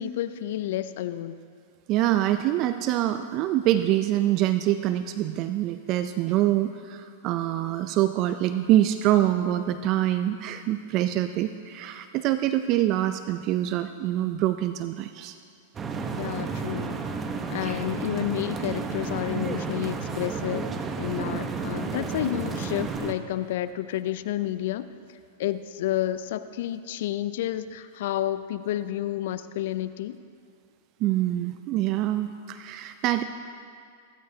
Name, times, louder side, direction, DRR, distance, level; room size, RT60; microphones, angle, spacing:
voice 1, 0.0-1.4 16.2-17.0 17.5-20.7 21.0-24.9 25.4-30.2, left 12 dB, 65° left, 13 dB, 0.5 m, -30 dB
voice 2, 1.9-15.4 31.0-33.2, right 13 dB, 45° right, 10 dB, 0.5 m, -25 dB
sound 1, 15.7-23.1, right 4 dB, 25° right, 1.1 m, -32 dB
23.0 x 13.5 x 2.8 m, 2.2 s
hypercardioid pair, 105°, 0 cm